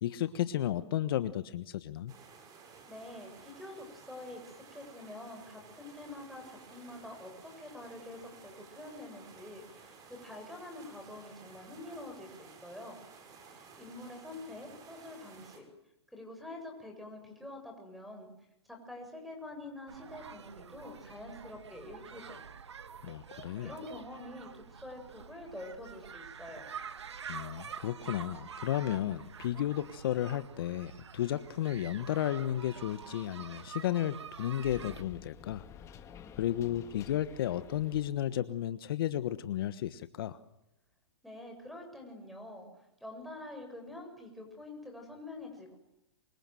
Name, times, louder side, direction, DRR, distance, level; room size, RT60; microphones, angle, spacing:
voice 1, 0.0-2.1 23.0-23.7 27.3-35.7 36.4-40.4, left 12 dB, 55° left, 12 dB, 1.3 m, -33 dB
sound 1, 2.1-15.6, right 5 dB, 25° right, 6.1 m, -55 dB
voice 2, 2.9-13.0 13.5-15.7 16.1-18.3 18.7-22.4 23.6-26.7 41.2-45.8, left 1 dB, ahead, 4 dB, 7.5 m, -46 dB
sound 2, 19.9-35.0, right 7 dB, 80° right, 1.8 m, -47 dB
sound 3, 34.6-38.2, left 8 dB, 20° left, 1.8 m, -50 dB
27.5 x 25.5 x 7.8 m, 0.86 s
hypercardioid pair, 135°, 14 cm